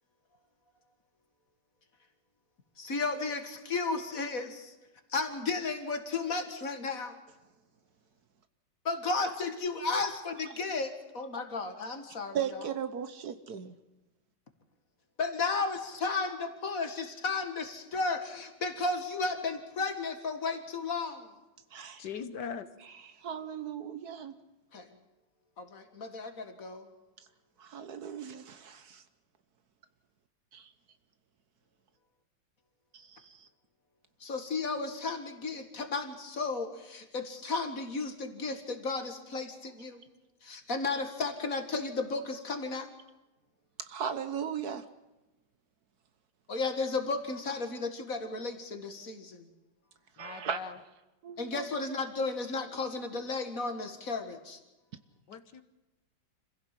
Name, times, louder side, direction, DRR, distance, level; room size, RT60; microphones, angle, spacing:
voice 1, 2.8-4.7 5.1-7.2 8.8-12.6 15.2-21.3 24.7-24.9 25.6-26.9 34.2-40.0 40.4-42.9 46.5-49.5 51.4-54.6, left 3 dB, 50° left, 2.3 m, -34 dB
voice 2, 12.3-13.8 21.7-22.0 22.8-24.3 27.6-29.0 32.9-33.5 43.9-44.9 50.2-50.6 51.2-51.7, right 8 dB, 60° right, 1.4 m, -37 dB
voice 3, 22.0-22.7 50.2-50.8 55.3-55.6, left 6 dB, 70° left, 1.6 m, -40 dB
26.0 x 16.0 x 7.6 m
omnidirectional pair, 2.0 m